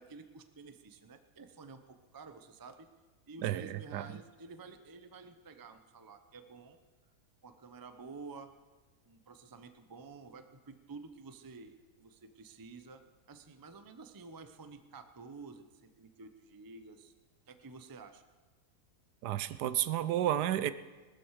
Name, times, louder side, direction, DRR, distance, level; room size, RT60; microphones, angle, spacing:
voice 1, 0.0-2.9 3.3-6.8 7.4-8.5 9.0-13.0 13.3-17.1 17.5-18.2, right 4 dB, 25° right, 9 dB, 0.4 m, -51 dB
voice 2, 3.4-4.0 19.2-20.7, right 12 dB, 80° right, 14 dB, 1.2 m, -31 dB
19.0 x 13.0 x 4.8 m, 1.3 s
omnidirectional pair, 1.8 m